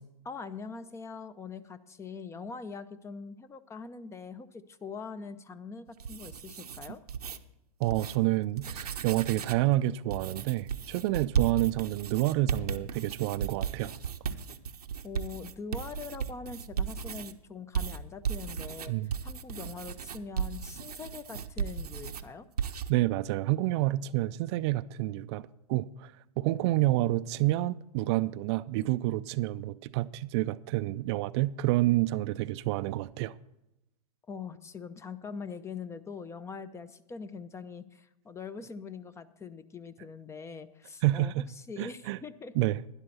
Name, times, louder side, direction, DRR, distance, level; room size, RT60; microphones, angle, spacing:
voice 1, 0.2-7.0 15.0-18.9 19.2-22.5 34.3-42.5, left 5 dB, 15° left, 0.6 m, -43 dB
sound 1, 5.9-7.4 7.8-8.2 8.5-9.7 10.1-17.3 17.7-22.2 22.6-22.9, right 7 dB, 90° right, 0.8 m, -35 dB
voice 2, 7.8-14.0 18.9-19.1 22.9-33.3 41.0-41.5 41.8-42.2 42.6-42.8, right 17 dB, 45° right, 0.4 m, -28 dB
12.0 x 10.5 x 4.2 m
hypercardioid pair, 110°, 19 cm